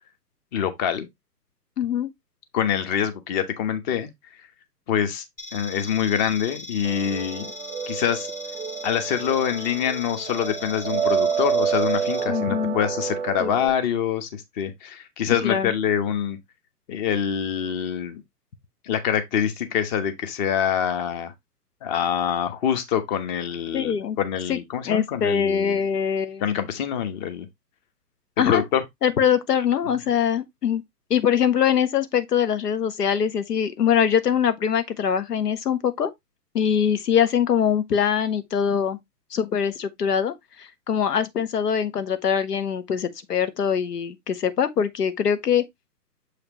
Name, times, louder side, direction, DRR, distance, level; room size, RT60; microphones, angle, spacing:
voice 1, 0.5-1.1 2.5-4.1 4.9-5.2 5.5-7.5 7.9-8.3 8.8-16.4 16.9-18.2 18.8-21.3 21.8-25.8 26.4-27.5 28.4-28.8, left 9 dB, 30° left, 1.2 m, -25 dB
voice 2, 1.8-2.1 12.3-12.8 13.4-13.5 15.4-15.7 23.7-24.2 24.5-24.6 24.9-26.6 28.4-28.6 29.0-30.8 31.1-36.1 36.5-39.0 39.3-45.6, left 8 dB, 70° left, 1.3 m, -23 dB
sound 1, 5.4-12.2, left 2 dB, 10° left, 0.4 m, -39 dB
sound 2, 6.8-13.7, right 7 dB, 15° right, 0.8 m, -28 dB
7.3 x 4.9 x 3.0 m
hypercardioid pair, 135°, 49 cm